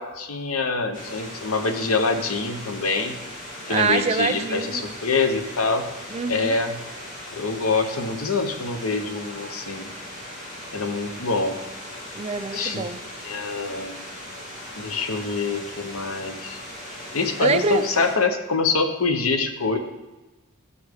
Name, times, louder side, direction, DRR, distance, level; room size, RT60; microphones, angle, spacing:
voice 1, 0.0-3.2 3.7-5.9 6.3-6.8 7.3-9.9 10.7-11.6 12.5-12.9 13.2-14.0 14.8-16.6 17.1-19.8, left 4 dB, 75° left, 7 dB, 0.8 m, -25 dB
sound 1, 0.9-18.1, left 1 dB, 40° left, 2.0 m, -38 dB
voice 2, 3.7-4.9 6.1-6.6 12.2-13.0 17.0-17.1 17.4-17.8, right 4 dB, 30° right, 11 dB, 0.4 m, -25 dB
11.5 x 5.4 x 3.5 m, 1.1 s
head